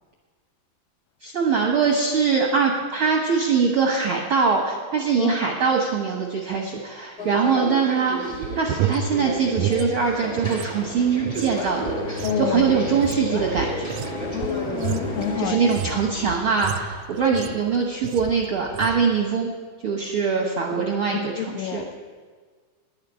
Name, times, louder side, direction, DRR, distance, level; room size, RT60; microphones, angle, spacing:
voice 1, 1.2-13.9 15.4-19.5 19.8-21.8, right 5 dB, 70° right, -1 dB, 1.2 m, -23 dB
sound 1, 7.2-15.5, equal, 25° left, 0.6 m, -32 dB
sound 2, 8.3-10.7 11.0-17.7 18.0-18.4 18.7-19.0, right 9 dB, 90° right, 1.6 m, -31 dB
Bowed string instrument, 11.8-16.8, left 4 dB, 65° left, 2.1 m, -35 dB
voice 2, 12.2-12.7 14.3-15.6 17.5-17.6 20.7-20.8 21.4-22.0, left 9 dB, 90° left, 9 dB, 2.4 m, -29 dB
10.5 x 6.6 x 9.2 m, 1.5 s
omnidirectional pair, 3.9 m